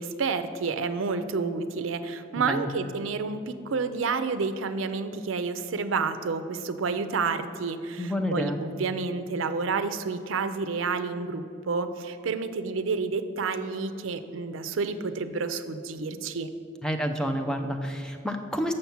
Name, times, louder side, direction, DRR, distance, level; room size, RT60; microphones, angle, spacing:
voice 1, 0.0-16.5, right 4 dB, 85° right, 10 dB, 0.5 m, -30 dB
voice 2, 2.4-2.7 8.0-8.6 16.8-18.7, equal, 5° left, 4 dB, 0.5 m, -29 dB
6.5 x 5.9 x 7.0 m, 2.5 s
head